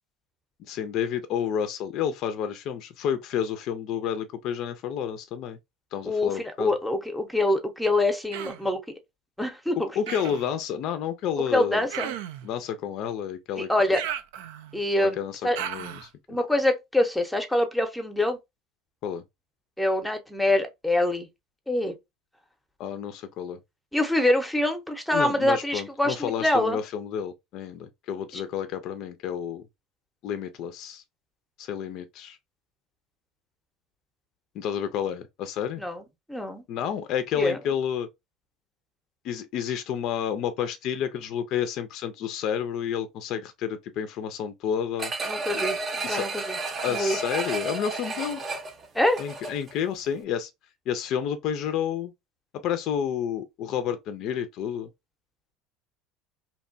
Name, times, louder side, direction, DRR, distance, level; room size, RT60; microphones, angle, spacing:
voice 1, 0.7-5.6 5.9-6.7 10.0-11.9 12.4-13.7 14.9-16.1 19.0-19.2 22.8-23.6 25.1-29.6 30.2-31.0 31.6-32.4 34.5-35.8 36.7-38.1 39.2-45.1 45.5-45.7 46.0-46.3 46.8-48.4 49.2-50.5 50.9-52.1 52.6-54.9, left 8 dB, 60° left, 0.4 m, -30 dB
voice 2, 6.1-8.8 9.4-9.9 11.5-12.2 13.6-14.0 14.7-15.2 15.4-15.6 16.3-18.4 19.8-21.3 21.7-21.9 23.9-26.8 28.3-28.4 35.8-36.0 36.3-36.6 37.4-37.6 45.3-46.6 46.9-47.2 48.9-49.2, left 1 dB, 5° left, 0.7 m, -25 dB
Human voice, 8.3-8.7 10.1-10.5 11.9-12.5 13.9-14.8 15.6-16.1, right 10 dB, 75° right, 0.3 m, -35 dB
sound 1, 45.0-49.8 50.2-50.3, right 3 dB, 35° right, 0.6 m, -32 dB
2.8 x 2.2 x 2.6 m
hypercardioid pair, 85°, 0 cm